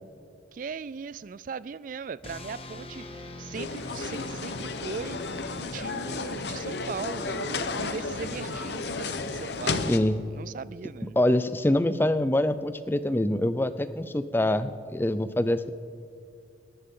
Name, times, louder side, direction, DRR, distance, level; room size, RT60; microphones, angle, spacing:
voice 1, 0.5-5.2 5.6-9.9 10.3-11.2, right 5 dB, 45° right, 18 dB, 0.3 m, -39 dB
sound 1, 2.2-8.1, left 2 dB, 30° left, 1.1 m, -43 dB
sound 2, 3.5-10.0, left 3 dB, 65° left, 0.9 m, -33 dB
voice 2, 9.9-10.2 11.2-15.7, left 1 dB, 10° left, 12 dB, 0.5 m, -25 dB
20.5 x 18.0 x 3.8 m, 2.5 s
head